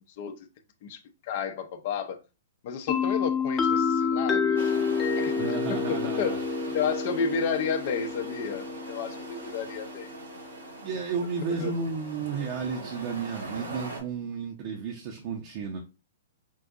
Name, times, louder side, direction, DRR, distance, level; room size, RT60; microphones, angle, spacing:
voice 1, 0.2-0.5 0.8-2.2 2.6-4.7 5.2-6.4 6.7-10.1 11.6-11.7, left 6 dB, 50° left, 0.6 m, -32 dB
sound 1, 2.9-10.5, left 5 dB, 20° left, 0.8 m, -29 dB
sound 2, 4.6-14.0, right 2 dB, 85° right, 1.4 m, -42 dB
voice 2, 5.3-6.4 10.8-15.8, right 5 dB, 45° right, 0.7 m, -33 dB
5.5 x 2.5 x 2.4 m
hypercardioid pair, 115°, 0 cm